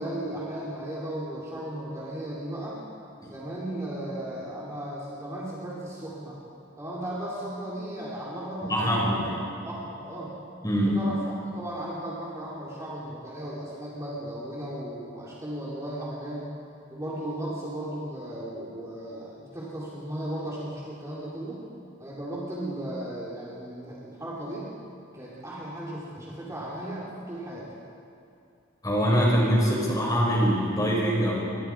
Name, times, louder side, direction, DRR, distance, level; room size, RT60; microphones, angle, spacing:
voice 1, 0.0-2.8 3.2-6.4 6.8-9.4 9.6-10.3 10.7-16.5 16.9-21.6 22.0-24.7 25.1-27.7, right 1 dB, 15° right, -7 dB, 4.0 m, -36 dB
voice 2, 8.7-9.3 10.6-11.0 28.8-31.4, equal, 20° left, -4 dB, 6.3 m, -23 dB
29.5 x 24.0 x 5.0 m, 2.6 s
head